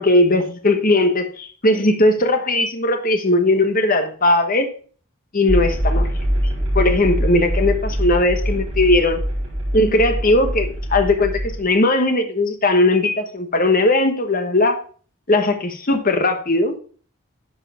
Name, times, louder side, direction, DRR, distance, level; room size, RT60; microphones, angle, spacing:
voice 1, 0.0-4.7 5.3-6.1 6.7-9.2 9.7-14.8 15.3-16.7, left 2 dB, 40° left, 7 dB, 1.1 m, -18 dB
sound 1, 5.5-11.6, equal, 30° right, 4.8 m, -23 dB
10.0 x 4.8 x 5.6 m, 0.42 s
head